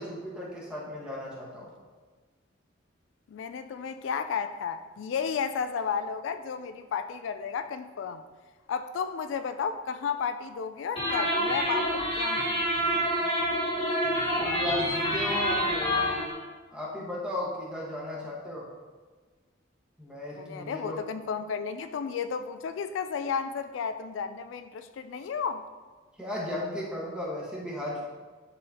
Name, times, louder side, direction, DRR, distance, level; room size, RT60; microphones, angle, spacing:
voice 1, 0.0-1.7 14.4-16.2 16.7-18.7 20.0-21.0 26.2-28.0, left 1 dB, 5° right, -6 dB, 1.4 m, -35 dB
voice 2, 3.3-8.2 8.7-12.5 20.4-25.7, left 6 dB, 75° left, 9 dB, 0.3 m, -33 dB
sound 1, 11.0-16.3, equal, 30° left, 1.5 m, -27 dB
10.5 x 4.0 x 2.9 m, 1.4 s
head